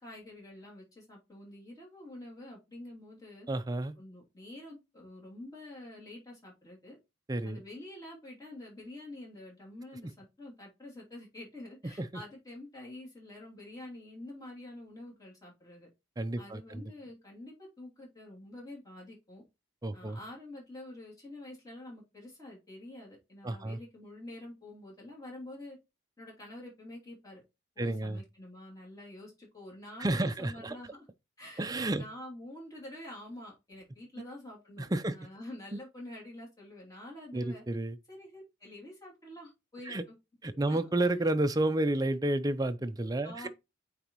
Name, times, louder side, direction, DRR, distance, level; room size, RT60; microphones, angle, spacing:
voice 1, 0.0-3.5 3.9-7.0 7.4-15.9 16.4-19.4 19.9-25.8 26.2-27.4 27.7-31.1 31.4-37.6 38.1-40.1 40.7-40.9 43.2-43.5, left 1 dB, 20° left, 2.8 m, -47 dB
voice 2, 3.5-4.0 7.3-7.6 12.0-12.1 16.2-16.8 19.8-20.2 23.4-23.8 27.8-28.2 30.0-30.8 31.6-32.0 34.8-35.1 37.3-38.0 39.9-40.0 40.4-43.5, right 1 dB, 20° right, 0.5 m, -31 dB
8.7 x 4.1 x 3.0 m
head